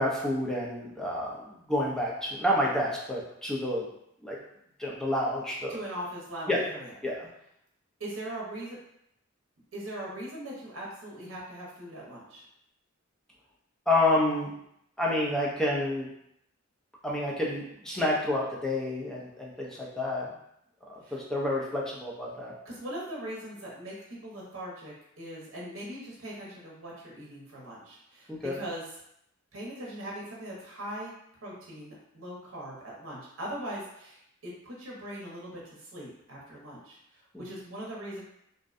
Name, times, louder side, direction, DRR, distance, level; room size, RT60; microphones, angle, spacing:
voice 1, 0.0-3.9 4.2-4.4 4.8-5.8 6.5-6.6 7.0-7.3 13.9-14.5 15.0-16.1 17.0-20.3 20.9-22.5 28.3-28.6 37.3-37.4, left 1 dB, 5° left, -4 dB, 0.4 m, -29 dB
voice 2, 5.7-6.9 8.0-8.8 9.7-12.4 21.0-21.2 22.6-28.9 29.5-31.1 31.4-38.2, right 1 dB, 65° right, -4 dB, 0.7 m, -40 dB
2.5 x 2.1 x 2.4 m, 0.76 s
head